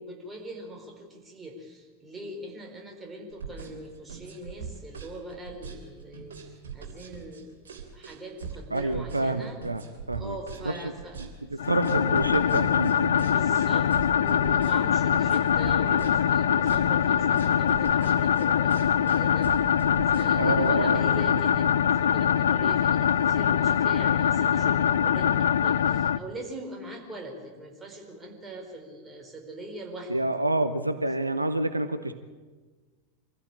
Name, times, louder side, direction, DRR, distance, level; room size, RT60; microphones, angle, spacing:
voice 1, 0.0-7.6 7.9-9.6 10.2-11.2 13.2-19.6 20.1-21.7 22.0-30.2, right 1 dB, 10° right, 1 dB, 4.3 m, -42 dB
sound 1, 3.3-20.7, right 6 dB, 65° right, 3.2 m, -41 dB
voice 2, 8.7-9.8 10.1-10.4 10.6-10.8 11.2-13.2 20.3-21.4 30.1-32.1, right 2 dB, 85° right, 11 dB, 1.0 m, -28 dB
sound 2, 11.6-26.2, left 8 dB, 65° left, 0.6 m, -23 dB
24.0 x 15.5 x 8.6 m, 1.4 s
figure-of-eight pair, 90°, 0 cm